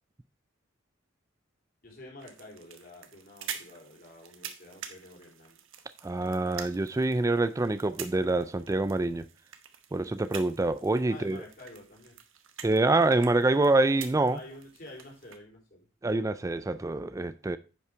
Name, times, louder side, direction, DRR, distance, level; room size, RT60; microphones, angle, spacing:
voice 1, 1.8-5.6 11.1-12.2 14.3-15.9, left 2 dB, 50° left, 3.5 m, -49 dB
sound 1, 2.2-15.4, right 8 dB, 85° right, 1.1 m, -47 dB
voice 2, 6.0-9.3 9.9-11.4 12.6-14.4 16.0-17.6, right 2 dB, 15° right, 0.4 m, -26 dB
10.0 x 5.5 x 4.6 m
head